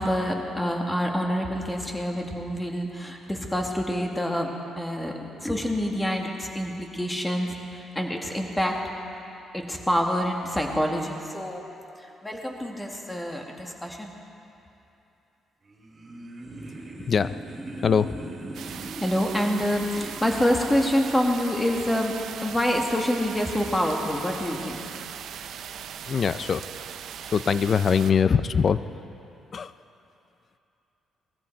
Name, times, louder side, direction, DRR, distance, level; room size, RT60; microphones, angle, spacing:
voice 1, 0.0-4.5 4.8-5.1 5.4-8.8 9.5-11.7 12.2-14.1 18.7-22.1 22.4-24.8, equal, 10° left, 1 dB, 2.0 m, -27 dB
sound 1, 15.6-20.5, right 1 dB, 40° right, 3.5 m, -40 dB
voice 2, 17.1-17.4 17.8-18.2 18.6-18.8 26.1-26.9 27.2-28.8 29.5-29.7, left 6 dB, 45° left, 14 dB, 0.5 m, -23 dB
sound 2, 18.5-28.1, right 8 dB, 70° right, 0.6 m, -39 dB
20.0 x 14.5 x 4.7 m, 2.8 s
cardioid pair, 90°, 0 cm